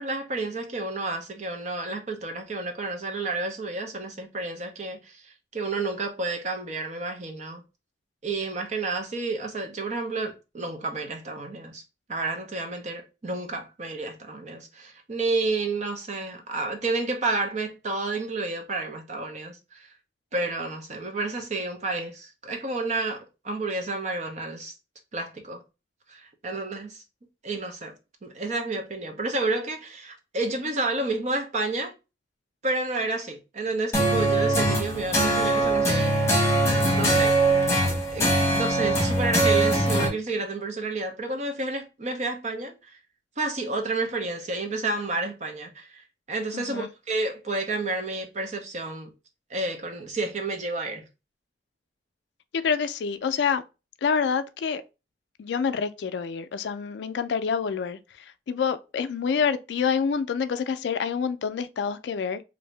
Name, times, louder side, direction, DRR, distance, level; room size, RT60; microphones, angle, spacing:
voice 1, 0.0-7.6 8.2-11.8 12.1-19.9 20.3-24.7 25.1-25.6 26.1-27.0 27.4-27.9 28.2-31.9 32.6-36.4 36.9-37.4 38.1-43.0 43.4-49.1 49.5-51.0, right 3 dB, 40° right, 0.7 m, -30 dB
sound 1, 33.9-40.1, right 1 dB, 15° left, 1.0 m, -22 dB
voice 2, 46.5-46.9 52.6-53.6 54.0-54.8 55.4-62.4, left 6 dB, 75° left, 0.3 m, -27 dB
2.7 x 2.6 x 3.1 m
head